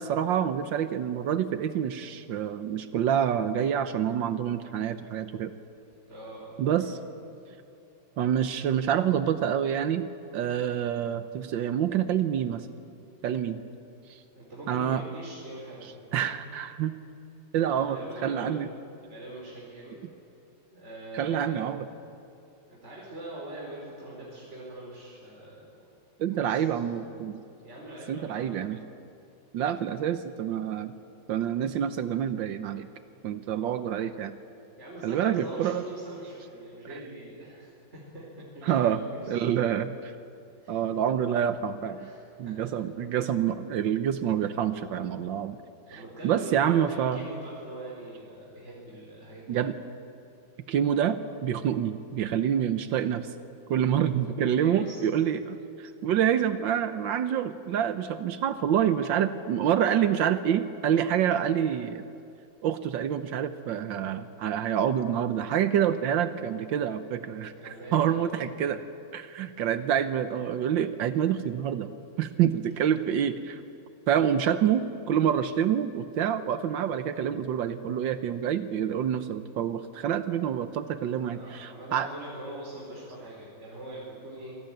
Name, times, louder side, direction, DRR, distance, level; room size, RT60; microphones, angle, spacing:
voice 1, 0.0-5.5 6.6-6.9 8.2-10.1 10.3-12.7 13.2-13.6 14.1-14.2 14.7-15.0 16.1-16.9 17.5-18.7 21.1-21.8 26.2-27.4 28.1-28.8 29.5-30.9 31.3-32.9 33.2-34.4 35.0-35.8 38.6-39.0 39.3-40.1 40.7-42.1 42.4-45.6 46.2-47.2 49.5-49.7 50.7-53.3 53.7-62.0 62.6-68.8 69.1-71.9 72.2-73.6 74.1-82.1, right 9 dB, 80° right, 10 dB, 1.6 m, -27 dB
voice 2, 6.1-6.9 14.3-16.4 17.6-18.6 19.0-20.0 20.7-21.7 22.7-25.9 26.3-26.9 27.6-28.6 34.8-38.2 38.5-39.7 40.6-40.8 41.8-42.7 45.9-49.6 54.5-55.0 67.2-68.2 81.1-84.5, right 1 dB, 35° right, -5 dB, 5.0 m, -43 dB
26.5 x 19.0 x 9.2 m, 2.7 s
omnidirectional pair, 2.0 m